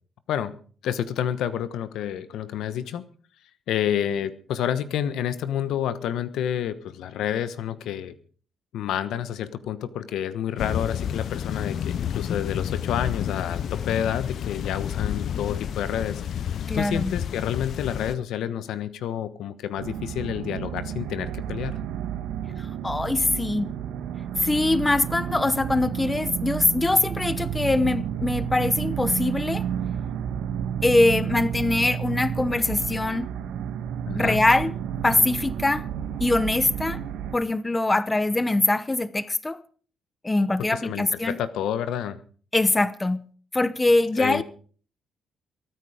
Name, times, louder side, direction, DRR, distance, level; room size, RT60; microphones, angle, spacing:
voice 1, 0.8-3.0 3.7-8.1 8.7-16.2 16.7-21.8 34.1-34.4 40.7-42.2 44.2-44.4, left 10 dB, 80° left, 1.2 m, -29 dB
sound 1, 10.6-18.2, left 9 dB, 65° left, 0.6 m, -30 dB
voice 2, 16.7-17.1 22.6-23.7 24.4-29.7 30.8-33.3 34.1-34.7 35.0-35.9 36.2-37.0 37.3-39.6 40.2-41.4 42.5-43.3 43.5-44.4, left 2 dB, 15° left, 0.9 m, -23 dB
sound 2, 19.8-37.4, right 9 dB, 80° right, 1.4 m, -31 dB
22.5 x 9.4 x 5.1 m
cardioid pair, 90°, 0 cm